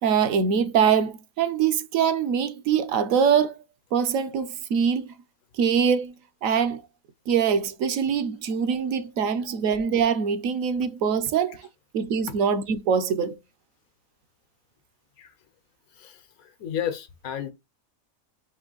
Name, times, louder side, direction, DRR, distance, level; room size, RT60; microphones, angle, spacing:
voice 1, 0.0-3.6 3.9-5.1 5.6-6.1 6.4-6.8 7.3-11.6 11.9-13.4, right 7 dB, 70° right, 1.0 m, -23 dB
voice 2, 15.9-17.5, left 9 dB, 90° left, 1.3 m, -33 dB
4.4 x 3.0 x 3.8 m
omnidirectional pair, 1.5 m